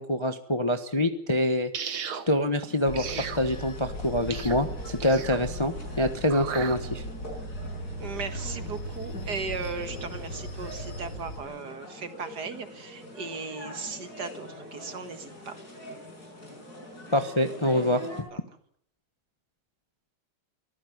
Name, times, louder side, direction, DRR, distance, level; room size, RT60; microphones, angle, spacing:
voice 1, 0.0-1.7 2.3-7.0 17.1-18.0, left 1 dB, 15° left, 8 dB, 1.0 m, -26 dB
sound 1, 1.7-2.3 2.9-3.4 4.3-4.6 5.0-5.4 6.3-6.8, right 7 dB, 70° right, 2.4 m, -35 dB
sound 2, 2.7-18.2, left 1 dB, 45° left, 6.1 m, -44 dB
Bell / Train, 2.9-11.4, equal, 65° left, 3.5 m, -38 dB
voice 2, 8.0-15.5 18.3-18.4, right 5 dB, 50° right, 10 dB, 2.0 m, -37 dB
23.5 x 15.0 x 9.5 m, 0.70 s
omnidirectional pair, 2.4 m